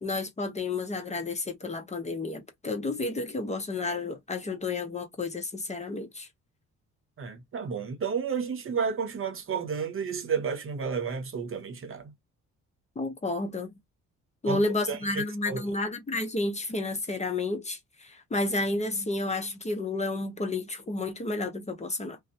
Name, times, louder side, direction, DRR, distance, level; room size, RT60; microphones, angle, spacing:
voice 1, 0.0-6.3 13.0-13.7 14.4-22.2, left 2 dB, 25° left, 0.7 m, -31 dB
voice 2, 7.2-12.1 14.4-14.6 14.9-15.6, right 6 dB, 45° right, 0.8 m, -31 dB
2.6 x 2.1 x 2.7 m
cardioid pair, 90°, 30 cm